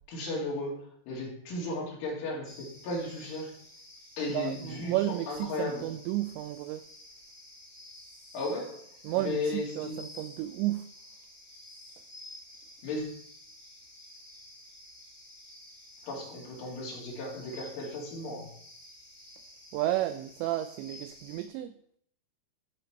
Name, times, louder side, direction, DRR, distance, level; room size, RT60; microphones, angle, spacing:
voice 1, 0.1-3.6 4.2-5.8 8.3-8.9 9.2-10.0 12.8-13.2 16.0-18.5, left 2 dB, 75° left, 5.0 m, -35 dB
sound 1, 2.4-21.5, left 1 dB, 5° left, 2.5 m, -51 dB
voice 2, 4.3-6.8 9.0-10.9 19.7-21.7, right 15 dB, 85° right, 2.6 m, -32 dB
14.0 x 5.2 x 4.5 m
omnidirectional pair, 5.6 m